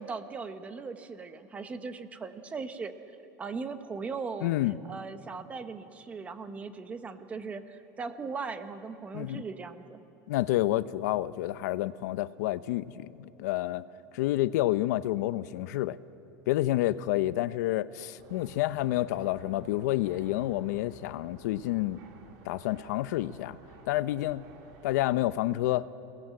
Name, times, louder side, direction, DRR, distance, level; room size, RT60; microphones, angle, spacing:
voice 1, 0.0-2.9 3.4-4.5 4.9-10.0, right 4 dB, 15° right, 10 dB, 0.9 m, -38 dB
voice 2, 4.4-4.8 9.1-9.4 10.3-13.9 14.1-16.0 16.5-22.0 22.5-23.6 23.9-24.4 24.8-25.9, left 15 dB, 85° left, 15 dB, 0.7 m, -29 dB
sound 1, 18.2-25.2, right 4 dB, 60° right, 3.3 m, -53 dB
28.0 x 18.5 x 7.6 m, 3.0 s
supercardioid pair, 175°, 9 cm